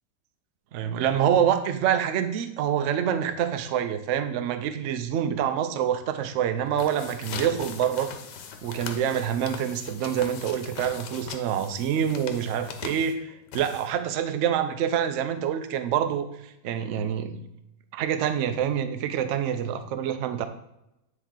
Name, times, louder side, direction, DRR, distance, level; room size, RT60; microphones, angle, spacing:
voice 1, 0.7-8.1 8.6-16.3 16.6-17.5 17.9-20.4, right 9 dB, 70° right, 9 dB, 0.7 m, -26 dB
sound 1, 6.6-14.2, left 7 dB, 90° left, 1.3 m, -40 dB
9.4 x 3.2 x 3.7 m, 0.85 s
omnidirectional pair, 1.8 m